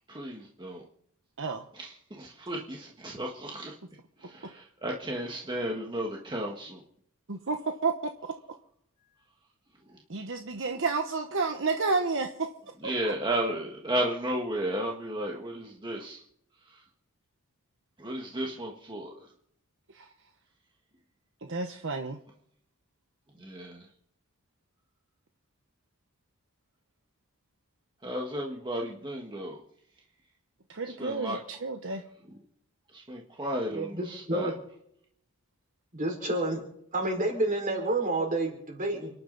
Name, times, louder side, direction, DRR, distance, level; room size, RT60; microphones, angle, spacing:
voice 1, 0.1-0.8 1.7-3.7 4.2-6.8 9.9-10.0 12.8-16.2 16.7-16.8 18.0-19.3 23.4-23.9 28.0-29.6 30.8-31.4 32.2-32.3 32.9-34.5, right 1 dB, 20° right, -1 dB, 1.7 m, -34 dB
voice 2, 7.3-7.9 10.1-12.3 19.9-20.1 21.5-22.2 30.7-31.4 31.6-32.0, right 4 dB, 60° right, 5 dB, 1.1 m, -30 dB
voice 3, 33.7-34.5 35.9-36.6 36.9-39.1, right 2 dB, 35° right, 1 dB, 5.1 m, -29 dB
30.0 x 11.0 x 4.1 m, 0.71 s
head